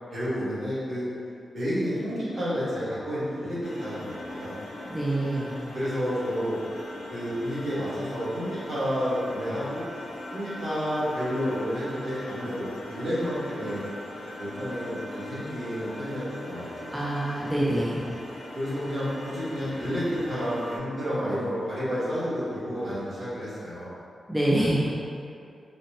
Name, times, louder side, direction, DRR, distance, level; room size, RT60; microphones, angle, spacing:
voice 1, 0.1-1.1 1.5-4.6 5.7-6.6 7.1-9.8 10.3-13.8 14.4-16.9 18.5-23.9, equal, 65° right, -12 dB, 1.4 m, -30 dB
sound 1, 3.6-20.8, left 1 dB, 45° left, 0.5 m, -40 dB
voice 2, 4.9-5.5 16.9-18.1 24.3-25.0, right 1 dB, 10° right, -7 dB, 0.4 m, -26 dB
4.0 x 2.1 x 2.8 m, 2.4 s
wide cardioid pair, 115°, 0 cm